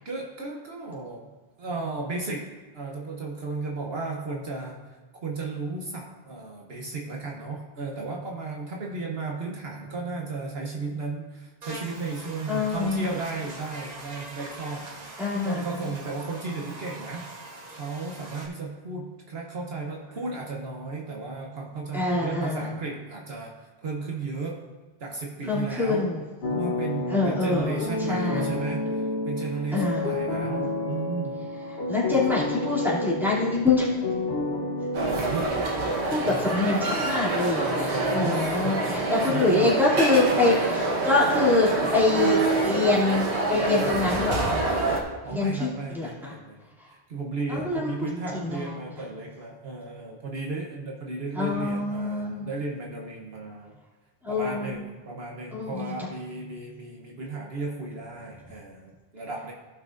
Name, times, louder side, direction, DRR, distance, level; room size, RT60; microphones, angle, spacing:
voice 1, 0.0-1.3 1.6-2.5 2.7-14.9 15.4-24.6 25.0-26.1 26.5-31.5 32.1-32.4 35.3-35.5 36.2-36.6 37.9-39.7 41.8-41.9 45.2-53.8 54.3-59.5, right 3 dB, 65° right, -1 dB, 1.2 m, -34 dB
Buzz, 11.6-18.5, right 2 dB, 40° right, 1.1 m, -42 dB
voice 2, 12.5-13.1 15.2-15.9 21.9-22.6 25.5-26.2 27.1-28.5 29.7-30.2 31.9-33.9 35.9-44.6 45.3-45.7 45.9-46.3 47.5-48.0 48.4-48.7 51.4-52.5 54.2-54.8 55.5-55.9, left 2 dB, ahead, -7 dB, 2.6 m, -25 dB
sound 1, 26.4-35.4, left 2 dB, 70° left, 1.3 m, -30 dB
sound 2, 34.9-45.0, right 2 dB, 85° right, 1.5 m, -26 dB
15.5 x 6.0 x 2.6 m, 1.3 s
omnidirectional pair, 1.1 m